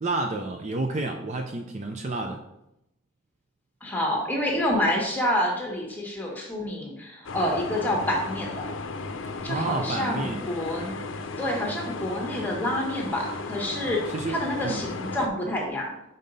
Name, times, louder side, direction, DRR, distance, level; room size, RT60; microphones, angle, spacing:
voice 1, 0.0-2.4 9.5-10.4 14.1-14.4 14.6-14.9, right 2 dB, 35° right, 4 dB, 0.5 m, -30 dB
voice 2, 3.8-8.6 9.4-11.0 11.4-15.9, left 1 dB, 10° left, 0 dB, 1.3 m, -28 dB
sound 1, 7.2-15.3, left 3 dB, 75° left, 0.6 m, -35 dB
5.6 x 3.9 x 5.3 m, 0.85 s
head